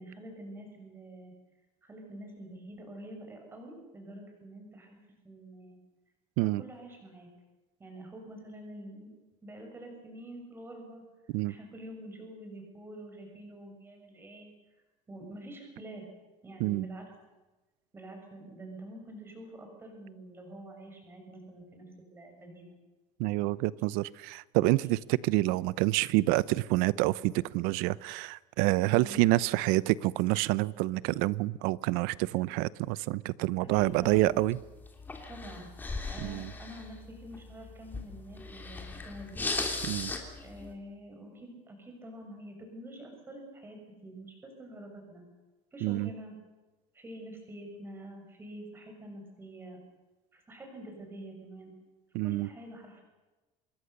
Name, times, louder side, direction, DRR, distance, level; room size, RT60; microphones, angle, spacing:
voice 1, 0.0-1.3 1.8-5.0 5.2-5.8 6.4-7.3 7.8-9.1 9.4-11.0 11.5-14.5 15.1-16.1 16.4-17.1 17.9-22.8 28.9-29.2 33.6-34.4 35.3-35.7 36.1-39.5 40.4-45.2 45.7-46.3 46.9-49.8 50.3-51.7 52.2-53.0, right 1 dB, 15° right, 6.6 m, -46 dB
voice 2, 23.2-34.6 36.2-36.5 39.9-40.1 45.8-46.1 52.1-52.5, right 18 dB, 85° right, 0.8 m, -27 dB
sound 1, 33.7-40.7, left 3 dB, 15° left, 3.1 m, -38 dB
26.0 x 21.5 x 6.8 m
cardioid pair, 165°, 15 cm